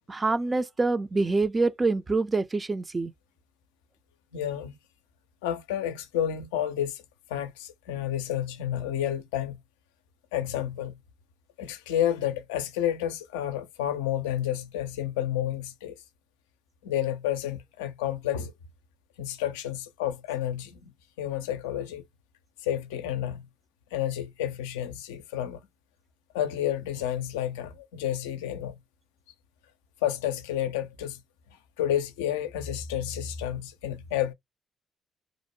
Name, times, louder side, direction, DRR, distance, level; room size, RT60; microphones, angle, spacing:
voice 1, 0.1-3.1, right 3 dB, 30° right, 0.5 m, -26 dB
voice 2, 4.3-4.8 5.4-7.0 7.3-9.6 10.3-11.0 11.6-16.0 16.8-18.5 19.2-20.9 21.2-22.0 22.6-23.5 23.9-25.6 26.3-28.8 30.0-31.2 31.8-34.3, left 11 dB, 90° left, 0.4 m, -30 dB
2.6 x 2.1 x 3.0 m
hypercardioid pair, 50°, 0 cm